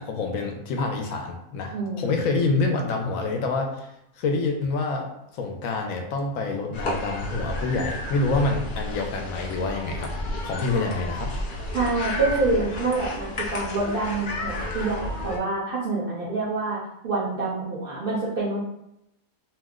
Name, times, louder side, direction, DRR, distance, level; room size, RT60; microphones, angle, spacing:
voice 1, 0.0-3.9 4.2-5.1 5.3-10.1 10.4-11.3, left 3 dB, 75° left, 3 dB, 1.0 m, -27 dB
voice 2, 1.7-2.1 11.7-18.6, right 3 dB, 55° right, -5 dB, 0.7 m, -27 dB
sound 1, 6.7-15.4, left 1 dB, 55° left, 0.5 m, -32 dB
2.7 x 2.0 x 3.5 m, 0.82 s
omnidirectional pair, 1.5 m